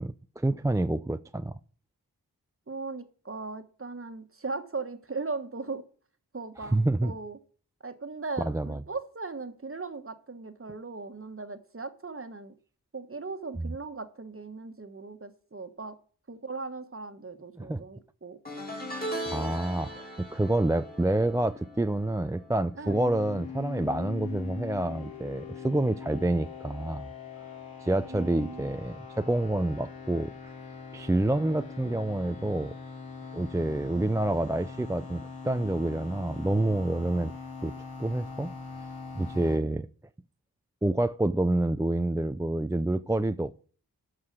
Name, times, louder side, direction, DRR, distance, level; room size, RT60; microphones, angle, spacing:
voice 1, 0.0-1.6 6.7-7.1 8.4-8.8 17.6-17.8 19.3-27.1 27.8-30.3 30.9-32.7 33.3-37.3 37.6-37.7 38.0-38.5 39.1-39.9 40.8-43.7, right 1 dB, 10° right, 0.4 m, -28 dB
voice 2, 2.7-5.8 6.3-7.4 7.8-12.5 12.9-16.0 16.3-18.4 22.8-23.0 28.1-28.7, right 3 dB, 35° right, 1.3 m, -38 dB
sound 1, 18.5-23.9 24.1-24.5 25.7-25.8, equal, 25° left, 3.0 m, -40 dB
sound 2, 22.8-39.6, left 5 dB, 65° left, 2.8 m, -42 dB
12.5 x 4.9 x 6.1 m
cardioid pair, 40°, 39 cm